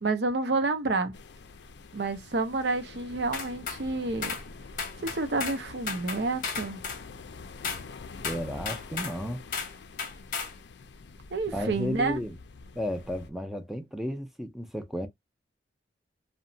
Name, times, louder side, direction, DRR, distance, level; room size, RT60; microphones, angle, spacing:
voice 1, 0.0-1.1 1.9-4.4 5.0-6.8 11.3-12.2, right 3 dB, 70° right, 0.6 m, -29 dB
sound 1, 1.1-13.3, left 4 dB, 75° left, 0.4 m, -46 dB
sound 2, 3.3-3.8 4.2-4.4 4.8-5.6 5.9-7.0 7.6-7.8 8.2-9.2 9.5-9.7 10.0-10.5, left 5 dB, 50° left, 0.7 m, -34 dB
voice 2, 8.2-9.4 11.5-12.4 12.7-15.1, equal, ahead, 0.4 m, -33 dB
2.8 x 2.1 x 2.6 m
head